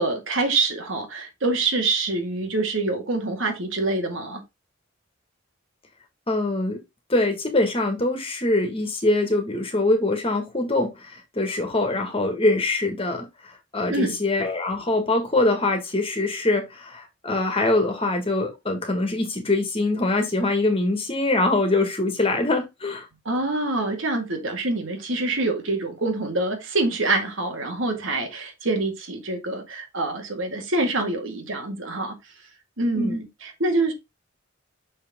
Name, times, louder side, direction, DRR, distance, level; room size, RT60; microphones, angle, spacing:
voice 1, 0.0-4.4 13.9-14.2 23.3-32.1 32.8-33.9, right 2 dB, 65° right, 2.1 m, -25 dB
voice 2, 6.3-6.8 7.1-13.3 13.7-23.0 32.9-33.2, left 2 dB, 25° left, 1.8 m, -23 dB
6.6 x 5.8 x 3.7 m
head